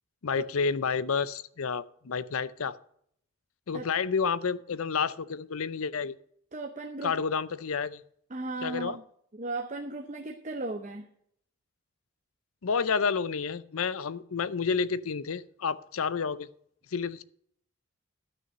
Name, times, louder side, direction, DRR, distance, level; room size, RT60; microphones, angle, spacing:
voice 1, 0.2-2.8 3.7-6.1 7.0-8.0 8.6-9.0 12.6-16.5 16.9-17.2, left 5 dB, 75° left, 17 dB, 0.6 m, -30 dB
voice 2, 6.5-7.1 8.3-9.0 9.3-11.1, right 2 dB, 35° right, 2 dB, 0.8 m, -36 dB
12.5 x 6.2 x 6.6 m, 0.68 s
head